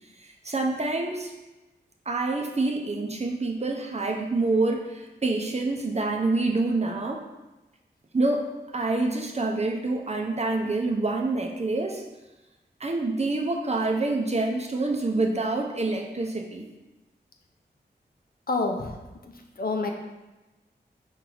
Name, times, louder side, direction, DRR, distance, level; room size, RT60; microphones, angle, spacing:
voice 1, 0.2-1.3 2.1-7.2 8.1-8.5 8.7-12.0 12.8-16.7, right 2 dB, 35° right, 1 dB, 0.7 m, -27 dB
voice 2, 18.5-19.0 19.2-19.9, left 3 dB, 55° left, 2 dB, 0.7 m, -28 dB
4.5 x 3.0 x 3.9 m, 1.1 s
cardioid pair, 45°, 18 cm